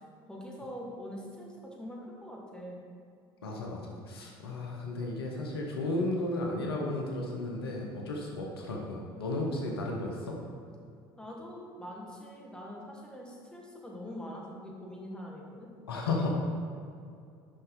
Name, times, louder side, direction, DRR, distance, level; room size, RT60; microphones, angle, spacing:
voice 1, 0.0-2.8 11.2-15.7, equal, 5° left, -2 dB, 1.6 m, -44 dB
voice 2, 3.4-10.3 15.9-16.3, left 2 dB, 90° left, 0 dB, 0.8 m, -34 dB
6.6 x 5.6 x 3.8 m, 2.3 s
hypercardioid pair, 65°, 12 cm